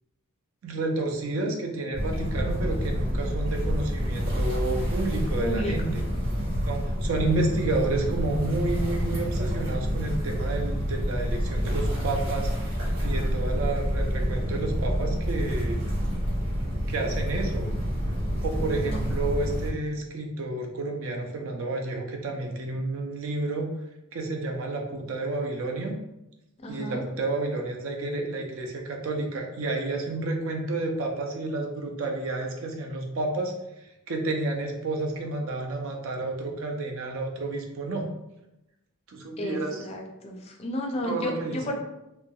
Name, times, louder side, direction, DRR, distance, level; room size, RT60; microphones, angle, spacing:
voice 1, 0.6-6.0 6.7-15.8 16.9-17.7 18.4-23.7 24.1-26.0 26.7-33.5 33.8-38.1 39.1-39.8 41.0-41.7, right 2 dB, 65° right, 2 dB, 0.4 m, -30 dB
sound 1, 1.9-19.7, equal, 80° right, 1.1 m, -28 dB
voice 2, 5.4-5.7 18.6-19.0 26.6-27.0 39.4-41.7, equal, 30° left, 1 dB, 0.4 m, -32 dB
3.3 x 2.1 x 2.3 m, 0.91 s
head